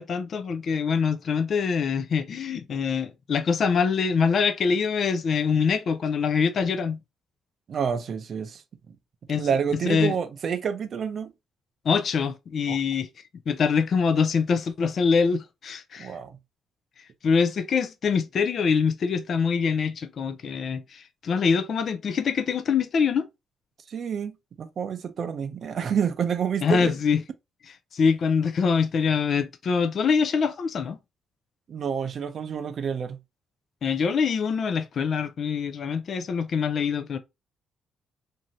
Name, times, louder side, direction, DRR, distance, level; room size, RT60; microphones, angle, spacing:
voice 1, 0.0-7.0 9.3-9.5 9.9-10.2 11.8-16.2 17.0-23.3 26.6-27.2 27.7-31.0 33.8-37.2, left 6 dB, 55° left, 0.4 m, -24 dB
voice 2, 7.7-9.0 9.4-11.3 12.7-12.8 16.0-16.4 23.9-26.9 31.7-33.2, right 7 dB, 55° right, 0.5 m, -29 dB
2.7 x 2.5 x 2.9 m
cardioid pair, 90°, 0 cm